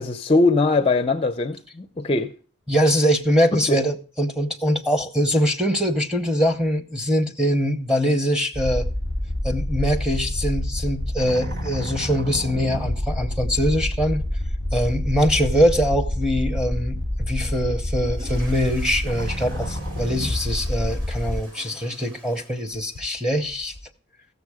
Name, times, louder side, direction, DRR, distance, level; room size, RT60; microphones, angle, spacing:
voice 1, 0.0-2.3 3.5-3.8, left 3 dB, 25° left, 0.4 m, -21 dB
voice 2, 2.7-8.9 9.4-14.2 14.7-23.7, equal, 5° right, 0.8 m, -23 dB
sound 1, 8.5-21.4, left 1 dB, 50° right, 1.4 m, -27 dB
sound 2, 17.8-23.8, equal, 85° right, 5.1 m, -46 dB
15.0 x 7.0 x 4.8 m
head